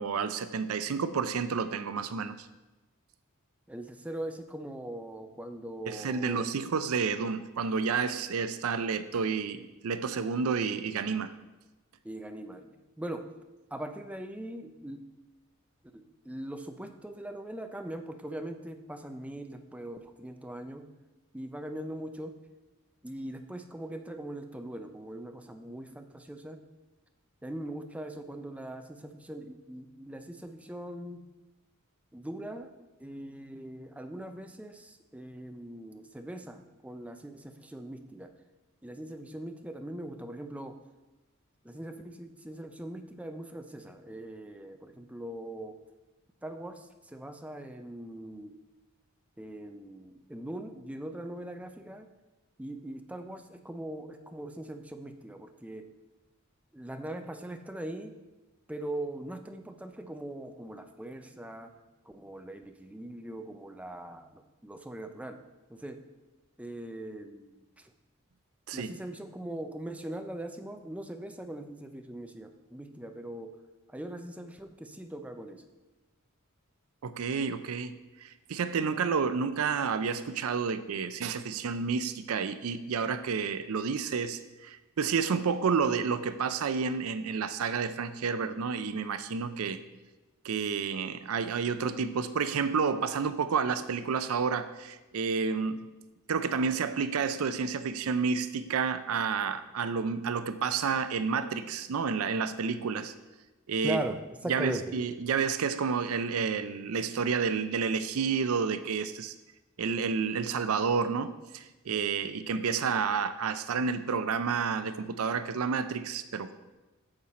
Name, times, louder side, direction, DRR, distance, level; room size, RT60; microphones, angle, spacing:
voice 1, 0.0-2.5 5.9-11.3 68.7-68.9 77.0-77.9 78.2-89.8 90.4-95.8 96.3-103.1 103.7-104.0 104.5-109.3 109.8-116.5, right 5 dB, 80° right, 12 dB, 0.5 m, -30 dB
voice 2, 3.7-6.4 12.0-12.7 13.0-13.2 13.7-15.0 15.9-20.8 21.3-22.3 23.0-26.6 27.4-31.2 32.1-32.7 33.0-38.3 38.8-40.7 41.6-45.7 46.4-46.8 47.1-48.5 49.4-52.1 52.6-55.9 56.7-58.1 58.7-61.7 62.1-65.4 65.7-66.0 66.6-67.5 68.7-73.5 73.9-75.6 103.8-104.9, right 1 dB, 5° right, 6 dB, 0.5 m, -40 dB
8.7 x 7.1 x 4.2 m, 1.1 s
head